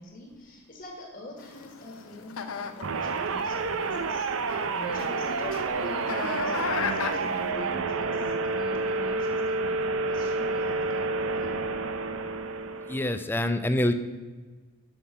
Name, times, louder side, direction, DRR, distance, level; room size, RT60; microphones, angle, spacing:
voice 1, 0.0-11.5, left 1 dB, 35° left, 1 dB, 1.4 m, -44 dB
sound 1, 1.4-7.5, left 6 dB, 80° left, 0.7 m, -37 dB
sound 2, 2.8-13.2, right 3 dB, 70° right, 0.6 m, -29 dB
voice 2, 12.9-13.9, left 1 dB, 10° left, 8 dB, 0.4 m, -25 dB
8.4 x 5.8 x 5.7 m, 1.4 s
head